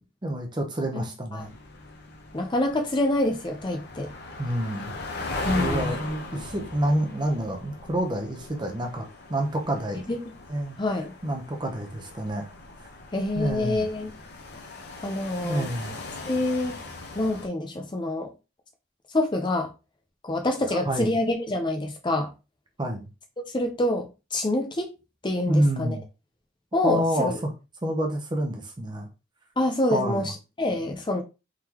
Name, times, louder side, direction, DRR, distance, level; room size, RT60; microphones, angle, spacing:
voice 1, 0.2-1.5 4.4-4.9 5.6-10.0 10.5-12.5 13.4-13.9 15.4-16.0 20.6-21.1 22.8-23.1 25.5-26.0 26.8-27.5 27.8-29.1 29.8-30.3, right 1 dB, 20° right, 0.7 m, -28 dB
sound 1, 1.4-17.5, left 2 dB, 55° left, 0.8 m, -39 dB
voice 2, 2.3-4.1 5.4-5.9 10.1-10.2 10.8-11.1 13.1-14.1 15.0-15.7 16.3-16.7 17.1-18.3 19.1-19.7 20.2-22.3 23.5-24.9 25.2-26.0 26.7-27.3 29.6-31.2, left 1 dB, 25° left, 0.6 m, -26 dB
3.7 x 3.3 x 2.9 m
head